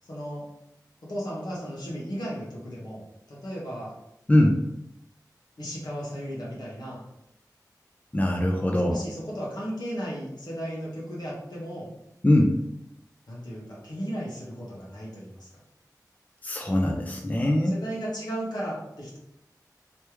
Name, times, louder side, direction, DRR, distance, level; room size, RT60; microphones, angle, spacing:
voice 1, 0.0-0.5 1.0-3.0 3.3-3.9 5.6-7.0 8.9-11.9 13.3-15.5 17.6-19.2, equal, 75° left, -6 dB, 1.4 m, -35 dB
voice 2, 8.1-9.0 12.2-12.5 16.4-17.7, left 1 dB, 20° left, 1 dB, 0.5 m, -22 dB
3.3 x 3.2 x 3.1 m, 0.81 s
wide cardioid pair, 50°, 7 cm